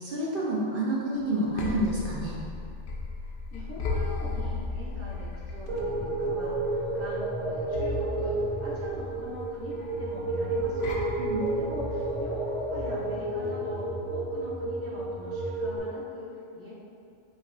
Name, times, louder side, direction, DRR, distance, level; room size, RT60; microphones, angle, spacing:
voice 1, 0.0-2.4 11.2-11.4, right 1 dB, 55° right, -6 dB, 0.7 m, -29 dB
sound 1, 1.2-13.1, left 3 dB, 60° left, 0.7 m, -36 dB
voice 2, 3.5-11.3 11.6-16.7, left 1 dB, 15° left, -9 dB, 0.5 m, -43 dB
sound 2, 5.7-15.8, right 2 dB, 80° right, 1.1 m, -31 dB
5.2 x 3.0 x 2.6 m, 2.4 s
omnidirectional pair, 1.2 m